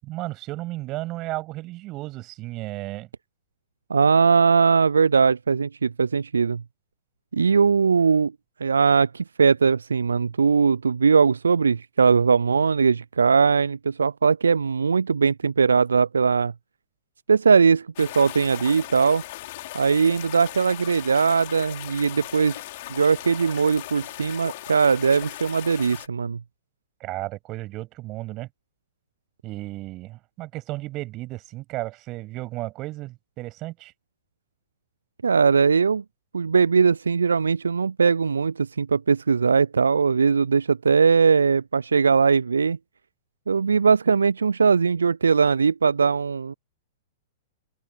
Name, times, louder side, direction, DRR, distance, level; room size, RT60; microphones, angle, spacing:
voice 1, 0.0-3.1 27.0-28.5 29.4-33.9, right 18 dB, 35° right, 7.3 m, -34 dB
voice 2, 3.9-6.6 7.3-8.3 8.6-16.5 17.3-19.2 19.7-22.6 22.9-26.4 35.2-36.0 36.3-42.8 43.5-46.5, right 5 dB, 80° right, 0.4 m, -20 dB
sound 1, 18.0-26.1, left 17 dB, 55° left, 4.2 m, -38 dB
open air
figure-of-eight pair, 105°, 0 cm